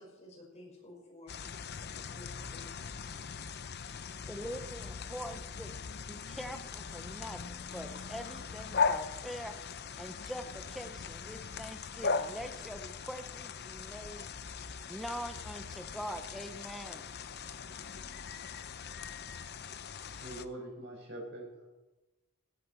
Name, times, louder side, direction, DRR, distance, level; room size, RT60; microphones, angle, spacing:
voice 1, 0.0-3.3 4.1-4.4, left 1 dB, 30° left, -2 dB, 5.7 m, -55 dB
sound 1, 1.3-20.5, left 5 dB, 50° left, 0.7 m, -39 dB
voice 2, 4.3-5.7 6.1-14.3 14.6-17.1, equal, ahead, 6 dB, 0.7 m, -44 dB
voice 3, 20.2-21.7, right 1 dB, 55° right, -1 dB, 6.0 m, -44 dB
17.5 x 14.5 x 4.6 m, 1.1 s
head